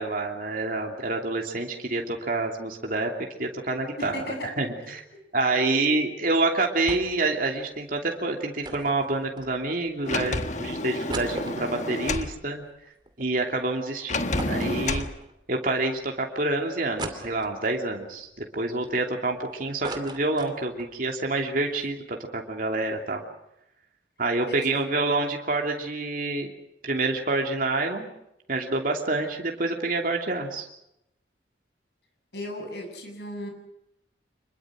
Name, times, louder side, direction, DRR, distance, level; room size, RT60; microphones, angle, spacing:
voice 1, 0.0-3.1 3.4-5.0 5.3-12.6 13.2-15.1 15.5-23.2 24.2-26.5 26.8-28.1 28.5-30.7, right 2 dB, 50° right, 2 dB, 2.9 m, -27 dB
voice 2, 4.0-4.5 5.5-5.9 24.5-24.8 32.3-33.5, equal, 60° left, 4 dB, 7.7 m, -35 dB
sound 1, 6.9-7.3 7.6-7.7 8.6-9.9 10.4-10.5 10.8-13.3 13.7-13.8 14.4-15.5 16.0-16.1 17.0-17.8 18.4-19.4 19.6-21.0 21.3-21.4 21.6-21.9, right 2 dB, 25° right, 2.5 m, -38 dB
Sliding door, 10.0-12.3 14.1-15.1, left 2 dB, 40° left, 1.4 m, -29 dB
26.5 x 22.5 x 6.3 m, 0.82 s
head